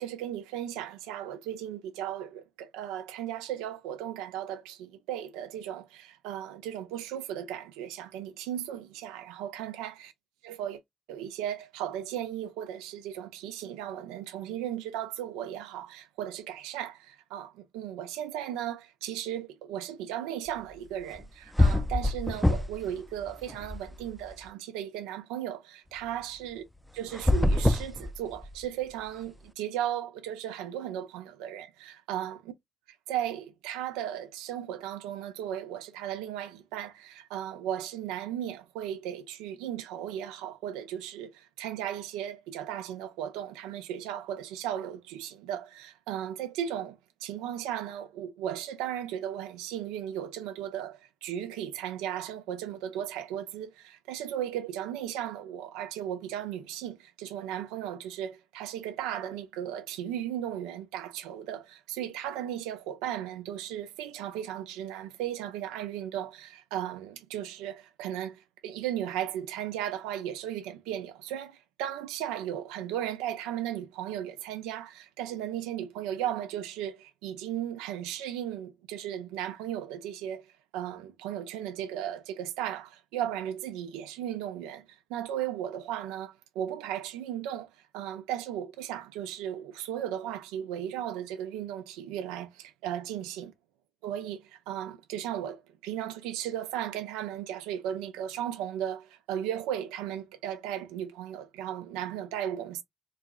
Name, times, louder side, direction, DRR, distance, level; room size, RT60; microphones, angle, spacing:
voice 1, 0.0-10.1 10.4-10.8 11.1-26.6 26.9-32.5 33.1-80.5 80.7-93.5 94.0-102.8, right 10 dB, 90° right, 0.4 m, -36 dB
sound 1, 21.2-21.3 21.6-22.9 23.2-24.3 27.1-28.7, left 1 dB, 5° left, 0.4 m, -25 dB
3.9 x 2.4 x 2.3 m
supercardioid pair, 50°, 0 cm